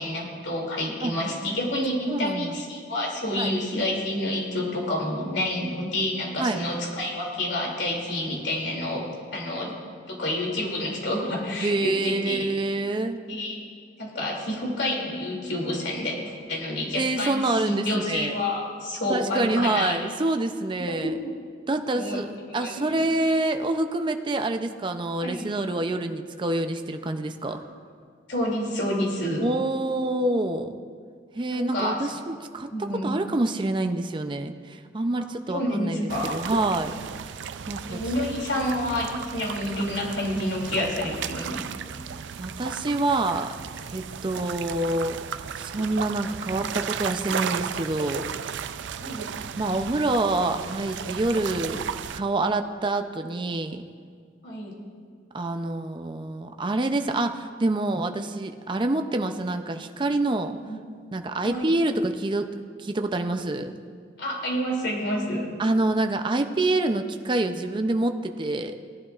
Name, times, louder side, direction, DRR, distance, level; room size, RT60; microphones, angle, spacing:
voice 1, 0.0-9.1 9.3-9.7 10.1-12.5 13.3-13.6 14.0-20.0 20.9-21.3 21.9-23.0 25.2-25.5 27.5-27.6 28.3-29.5 31.5-32.0 32.7-33.2 35.5-36.3 37.9-41.7 49.0-49.3 54.4-54.7 60.6-60.8 61.4-61.7 64.2-65.5, left 1 dB, 85° left, -1 dB, 2.6 m, -29 dB
voice 2, 2.1-2.6 3.3-3.5 6.4-6.6 11.6-13.2 16.9-18.4 19.1-21.1 21.7-27.6 29.4-30.7 31.3-36.9 37.7-38.0 42.4-43.5 43.9-45.2 45.6-48.3 49.6-51.8 52.1-53.8 55.3-60.6 61.1-62.5 62.8-63.7 65.6-68.7, right 2 dB, 25° right, 6 dB, 0.5 m, -26 dB
sound 1, 36.1-52.2, right 7 dB, 90° right, 0.4 m, -35 dB
18.5 x 11.5 x 2.4 m, 2.1 s
head